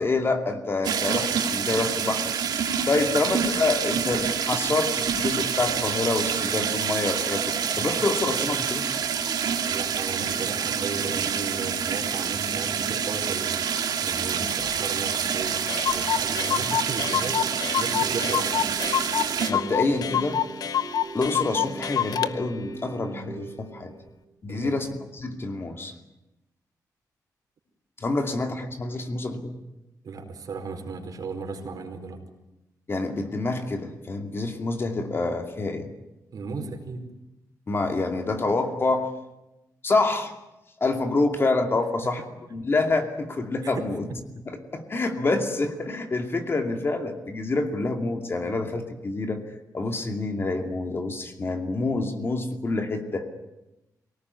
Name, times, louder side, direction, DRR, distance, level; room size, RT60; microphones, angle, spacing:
voice 1, 0.0-8.9 14.4-14.5 19.5-20.4 21.1-23.9 24.4-25.9 28.0-29.6 32.9-35.9 37.7-39.1 39.8-40.3 40.8-42.2 42.5-44.1 44.5-49.4 49.7-53.3, left 3 dB, 35° left, 5 dB, 2.5 m, -27 dB
sound 1, 0.8-19.5, right 7 dB, 85° right, 2.3 m, -27 dB
voice 2, 9.6-13.7 14.0-17.4 17.8-18.6 24.5-24.9 30.0-32.2 36.3-37.0 42.0-42.1 43.6-43.8, right 4 dB, 65° right, 4 dB, 4.6 m, -35 dB
Clock, 15.1-15.2 15.4-15.5 15.7-22.3, left 10 dB, 75° left, 0.8 m, -27 dB
sound 2, 17.1-24.2, right 5 dB, 45° right, 1.3 m, -41 dB
24.0 x 18.5 x 9.8 m, 0.97 s
wide cardioid pair, 120°, 7 cm